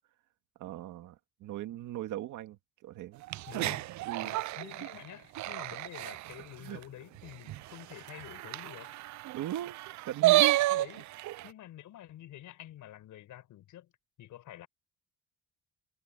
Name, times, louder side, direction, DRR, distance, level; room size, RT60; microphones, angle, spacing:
voice 1, 0.6-3.2 3.5-3.7 4.0-4.3 4.8-4.9 6.6-6.8 9.3-10.6 11.0-11.1, right 13 dB, 85° right, 2.0 m, -39 dB
sound 1, 3.2-6.4 6.8-6.9 7.2-7.3 7.5-11.5, right 17 dB, 70° right, 0.4 m, -30 dB
voice 2, 3.5-3.8 4.2-8.9 10.7-11.1 11.4-13.9 14.2-14.7, left 13 dB, 80° left, 7.1 m, -48 dB
cardioid pair, 90°, 30 cm